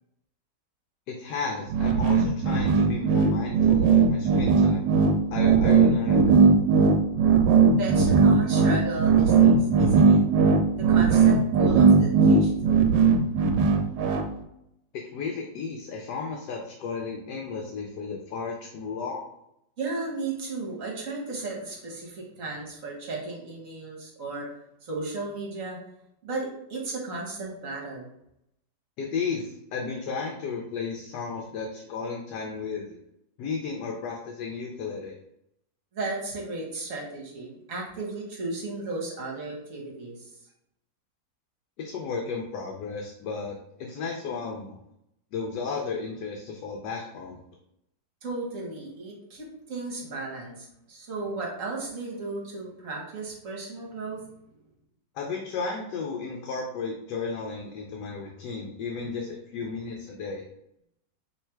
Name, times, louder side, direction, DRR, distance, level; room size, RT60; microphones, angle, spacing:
voice 1, 1.1-4.9 5.3-6.5 15.1-19.3 29.0-33.0 33.4-35.1 41.8-44.8 45.3-47.4 55.1-60.4, left 4 dB, 75° left, 0 dB, 1.2 m, -34 dB
sound 1, 1.7-14.3, right 5 dB, 85° right, 1.2 m, -19 dB
voice 2, 7.7-10.2 10.8-13.2 19.8-24.5 24.8-25.8 26.2-28.1 35.9-40.3 48.2-54.2, right 3 dB, 50° right, -2 dB, 1.4 m, -35 dB
3.2 x 3.2 x 4.5 m, 0.79 s
omnidirectional pair, 1.9 m